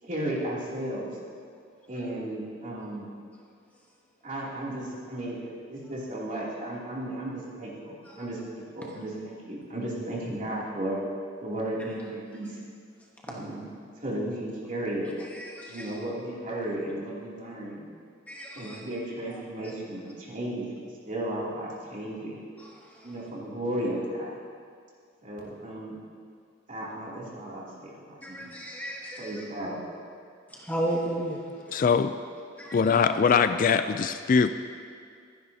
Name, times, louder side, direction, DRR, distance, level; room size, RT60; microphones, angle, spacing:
voice 1, 0.0-1.2 1.9-3.1 4.2-11.0 11.4-12.6 13.3-13.7 14.0-15.1 15.6-17.8 18.5-20.7 21.1-22.4 23.0-24.3 25.2-26.0 26.7-28.5 29.2-29.8, right 1 dB, 40° right, -6 dB, 2.9 m, -34 dB
voice 2, 18.3-18.8 28.2-29.3 30.7-31.4 32.6-32.7, right 1 dB, 10° left, -2 dB, 1.2 m, -32 dB
voice 3, 31.7-32.2 32.7-34.5, left 5 dB, 40° left, 10 dB, 0.3 m, -22 dB
25.5 x 10.5 x 2.8 m, 2.2 s
head